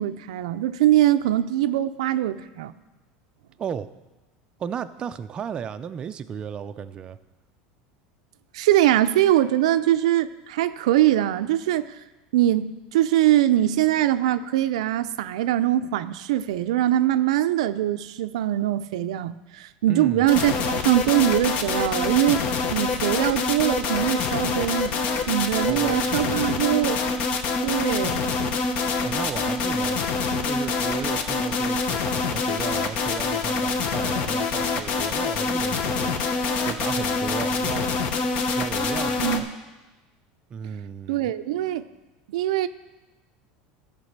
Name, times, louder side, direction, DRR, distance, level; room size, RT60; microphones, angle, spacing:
voice 1, 0.0-2.7 8.5-12.0 12.3-27.0 27.6-28.4 39.2-39.4 41.1-41.8 42.3-42.7, right 13 dB, 90° right, 11 dB, 0.5 m, -22 dB
voice 2, 3.6-3.9 4.6-7.2 19.9-20.2 25.6-26.6 29.0-30.0 30.4-37.9 38.5-39.5 40.5-41.3, right 7 dB, 25° right, 9 dB, 0.4 m, -34 dB
sound 1, 20.3-39.4, left 4 dB, 50° left, 0.9 m, -25 dB
13.5 x 5.3 x 6.5 m, 1.1 s
supercardioid pair, 140°, 3 cm